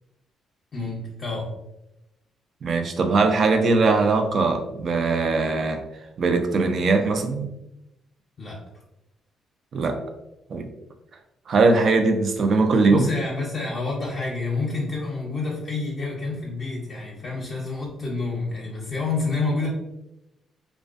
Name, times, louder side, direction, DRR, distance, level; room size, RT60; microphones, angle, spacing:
voice 1, 0.7-1.5 8.4-8.6 12.9-19.7, left 3 dB, 40° left, -4 dB, 0.6 m, -28 dB
voice 2, 2.6-5.8 6.2-7.5 9.7-10.0 10.5-10.7 11.5-13.1, right 3 dB, 50° right, 5 dB, 0.4 m, -20 dB
2.4 x 2.1 x 2.4 m, 0.90 s
cardioid pair, 90°, 0 cm